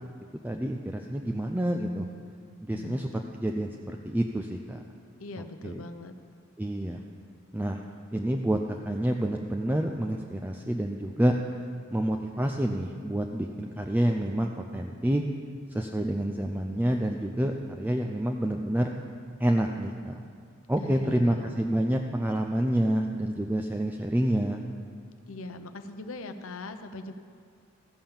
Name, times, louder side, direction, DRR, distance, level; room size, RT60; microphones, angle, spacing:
voice 1, 0.4-2.0 2.6-3.1 3.3-4.8 5.6-5.8 6.6-7.0 7.5-7.8 8.1-11.3 11.9-15.2 15.7-18.9 19.4-20.2 20.7-24.6, right 1 dB, 10° right, 2 dB, 0.4 m, -28 dB
voice 2, 2.7-3.2 5.2-6.1 20.8-21.5 25.3-27.1, left 2 dB, 75° left, 8 dB, 0.7 m, -41 dB
14.5 x 5.7 x 7.1 m, 2.2 s
head